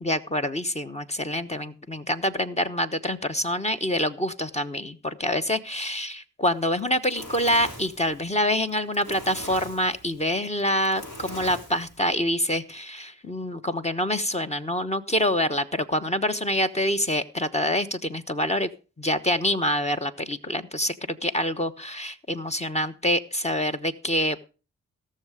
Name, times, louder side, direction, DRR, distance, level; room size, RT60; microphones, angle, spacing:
voice 1, 0.0-18.7 19.0-24.4, left 1 dB, 20° left, 9 dB, 1.1 m, -26 dB
Fire, 6.6-12.1, left 1 dB, 65° left, 6.5 m, -41 dB
16.5 x 6.8 x 5.0 m, 0.35 s
supercardioid pair, 45°, 31 cm